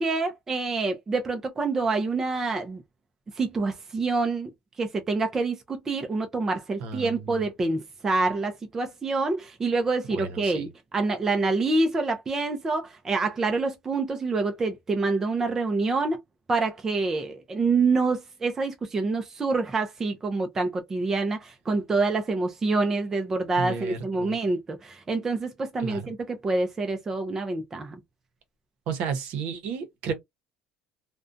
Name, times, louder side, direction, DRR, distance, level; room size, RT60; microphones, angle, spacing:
voice 1, 0.0-2.8 3.4-4.5 4.8-16.2 16.5-28.0, right 3 dB, 15° right, 0.4 m, -27 dB
voice 2, 6.8-7.4 10.1-10.7 23.6-24.4 25.8-26.0 28.9-30.1, right 6 dB, 60° right, 0.8 m, -33 dB
2.5 x 2.1 x 2.5 m
cardioid pair, 155°, 2 cm